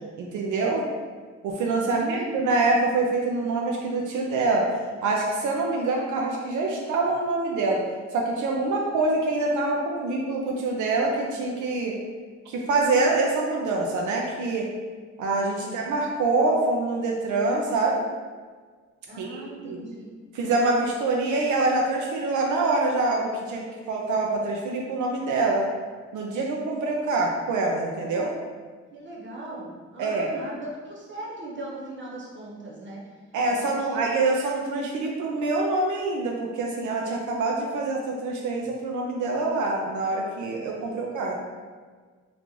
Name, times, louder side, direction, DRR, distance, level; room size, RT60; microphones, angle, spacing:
voice 1, 0.2-0.9 1.4-4.7 5.0-7.8 8.1-11.9 12.5-14.7 15.2-18.0 19.2-19.4 19.7-19.8 20.3-25.7 26.1-28.3 30.0-30.3 33.3-41.3, right 3 dB, 90° right, -1 dB, 0.5 m, -25 dB
voice 2, 1.9-2.4 15.6-15.8 19.1-20.1 28.9-33.0 33.6-34.0 40.7-41.0, right 2 dB, 40° right, -4 dB, 0.9 m, -38 dB
3.7 x 2.4 x 3.1 m, 1.5 s
cardioid pair, 95°, 29 cm